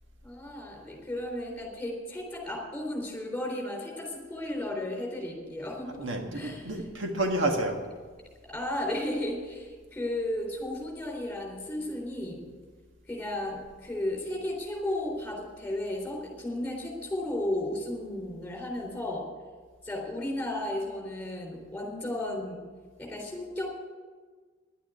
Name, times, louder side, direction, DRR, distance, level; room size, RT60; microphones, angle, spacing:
voice 1, 0.2-6.7 8.4-12.4 13.1-19.3 19.8-22.6 23.0-23.7, left 1 dB, 10° left, 0 dB, 3.7 m, -34 dB
voice 2, 6.0-7.8, right 1 dB, 75° right, 3 dB, 1.7 m, -29 dB
11.0 x 9.3 x 9.5 m, 1.5 s
head